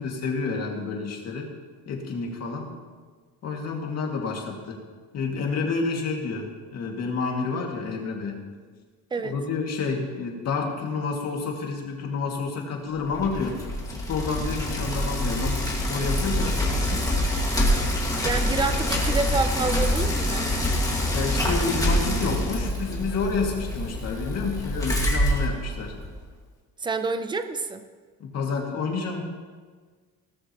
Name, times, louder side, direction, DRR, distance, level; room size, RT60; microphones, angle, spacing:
voice 1, 0.0-1.5 1.9-2.7 3.4-4.8 5.1-8.4 9.2-13.6 13.9-17.3 21.1-25.9 28.2-29.2, left 4 dB, 45° left, 0 dB, 2.2 m, -29 dB
Bicycle, 13.0-26.2, equal, 10° left, 1.9 m, -26 dB
voice 2, 18.2-20.5 26.8-27.8, right 3 dB, 15° right, 10 dB, 0.5 m, -28 dB
18.0 x 13.0 x 3.0 m, 1.5 s
cardioid pair, 175°, 36 cm